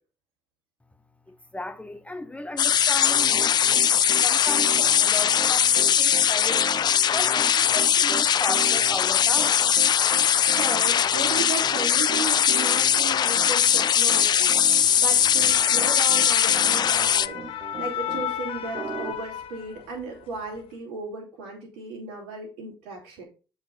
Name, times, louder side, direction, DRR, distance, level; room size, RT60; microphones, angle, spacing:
voice 1, 1.3-6.7 7.1-9.6, left 1 dB, 10° left, 0.8 m, -36 dB
sound 1, 2.6-17.3, left 9 dB, 40° left, 0.4 m, -21 dB
Piano, 3.1-18.3 18.7-19.1, right 5 dB, 40° right, 1.2 m, -38 dB
voice 2, 10.5-23.3, right 3 dB, 75° right, 2.7 m, -35 dB
sound 2, 15.2-20.0 20.4-20.6, left 10 dB, 60° left, 0.7 m, -34 dB
7.5 x 4.7 x 4.0 m
hypercardioid pair, 50°, 11 cm